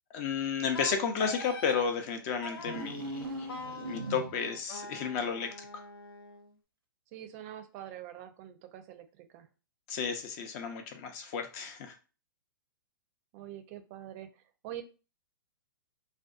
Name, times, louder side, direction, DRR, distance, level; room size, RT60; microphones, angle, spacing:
voice 1, 0.1-3.6 3.8-5.7 9.9-12.0, left 6 dB, 40° left, 6 dB, 0.6 m, -33 dB
Wind instrument woodwind instrument, 0.7-1.8 2.4-2.9 3.5-6.5, left 2 dB, 90° left, 0.5 m, -44 dB
sound 1, 2.6-4.6, right 2 dB, 85° right, 0.6 m, -39 dB
voice 2, 7.1-9.5 13.3-14.8, right 12 dB, 40° right, 8 dB, 0.5 m, -45 dB
2.5 x 2.3 x 2.4 m, 0.33 s
hypercardioid pair, 120°, 12 cm